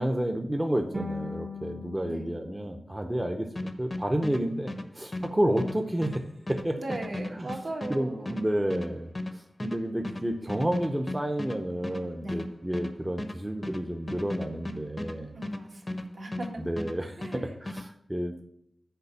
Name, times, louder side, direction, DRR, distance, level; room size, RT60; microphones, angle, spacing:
voice 1, 0.0-6.2 6.5-6.8 7.4-7.5 7.9-9.1 9.6-15.3 16.6-18.4, right 1 dB, 15° right, 4 dB, 0.7 m, -30 dB
sound 1, 0.9-4.0, left 2 dB, 40° right, 1.7 m, -41 dB
sound 2, 3.6-16.5 16.8-17.9, left 1 dB, 30° left, 0.6 m, -36 dB
voice 2, 6.8-8.4 12.2-12.4 15.3-16.6 17.2-17.5, right 2 dB, 65° right, 0 dB, 1.7 m, -38 dB
6.7 x 5.0 x 6.8 m, 0.74 s
wide cardioid pair, 115°, 0 cm